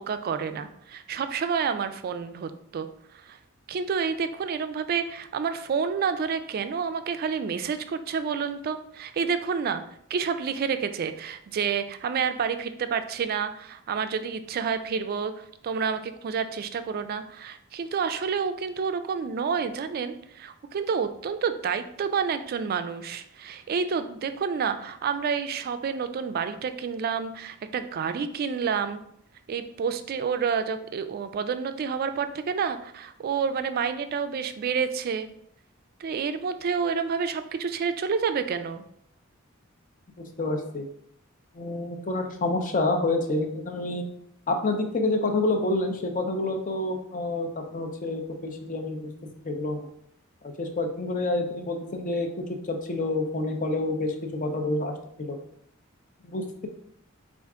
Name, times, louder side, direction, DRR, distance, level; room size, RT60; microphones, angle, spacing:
voice 1, 0.0-3.4 3.7-9.8 10.1-29.0 29.5-35.3 36.0-38.8, right 6 dB, 45° right, 10 dB, 0.3 m, -29 dB
voice 2, 40.2-40.9 41.5-44.1 44.5-49.1 49.4-49.8 50.4-52.3 52.7-54.1 54.4-54.9 55.2-55.4 56.2-56.7, left 2 dB, 40° left, 4 dB, 0.5 m, -28 dB
4.5 x 2.5 x 3.5 m, 0.70 s
head